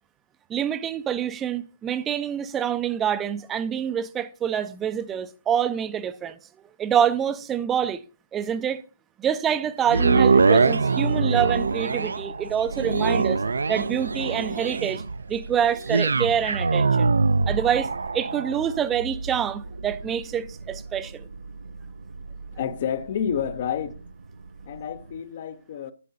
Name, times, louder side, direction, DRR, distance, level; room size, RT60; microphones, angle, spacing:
voice 1, 0.5-6.4 6.8-8.0 8.3-8.8 9.2-13.4 13.7-15.0 15.3-17.1 17.5-21.3, right 9 dB, 15° right, 0.5 m, -26 dB
sound 1, 9.9-24.1 24.6-24.7, right 4 dB, 70° right, 0.5 m, -24 dB
voice 2, 22.6-24.0 24.7-25.9, left 8 dB, 45° left, 0.8 m, -29 dB
11.0 x 8.4 x 2.7 m
figure-of-eight pair, 135°, 0 cm